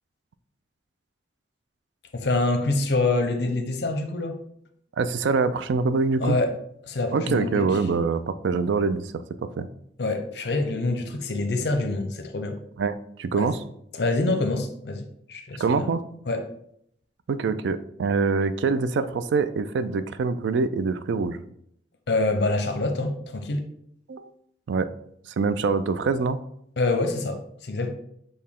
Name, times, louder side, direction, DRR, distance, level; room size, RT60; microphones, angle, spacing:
voice 1, 2.1-4.4 6.2-6.6 6.8-7.7 10.0-12.6 13.4-13.6 13.9-15.8 16.3-16.4 22.1-23.6 26.8-27.9, left 2 dB, 70° left, 6 dB, 0.6 m, -26 dB
voice 2, 5.0-6.4 7.1-9.1 9.6-9.7 12.8-13.6 15.6-16.0 17.3-21.4 24.1-24.3 24.7-24.9 25.4-26.4, right 4 dB, 80° right, 12 dB, 0.3 m, -24 dB
6.4 x 2.2 x 3.6 m, 0.72 s
head